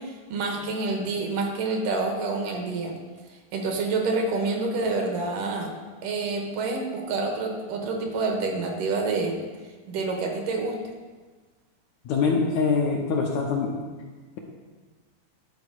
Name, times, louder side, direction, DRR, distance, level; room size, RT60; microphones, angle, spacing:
voice 1, 0.0-3.0 3.5-5.7 6.0-9.4 9.9-10.8, right 3 dB, 75° right, 3 dB, 2.6 m, -27 dB
voice 2, 12.1-13.9, left 4 dB, 70° left, 0 dB, 1.9 m, -24 dB
11.0 x 4.5 x 6.5 m, 1.4 s
omnidirectional pair, 3.9 m